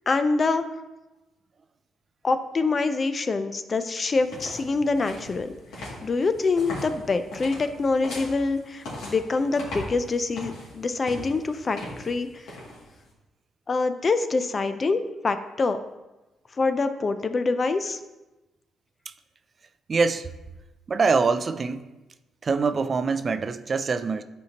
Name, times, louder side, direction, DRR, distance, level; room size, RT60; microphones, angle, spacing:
voice 1, 0.1-0.7 2.2-12.5 13.7-15.8 16.6-18.0, left 3 dB, 35° left, 0.5 m, -25 dB
sound 1, 4.1-13.1, left 1 dB, 80° left, 2.2 m, -40 dB
voice 2, 19.9-20.3 20.9-21.9 22.4-24.2, right 4 dB, 40° right, 0.4 m, -24 dB
10.5 x 4.4 x 2.9 m
cardioid pair, 90°, 0 cm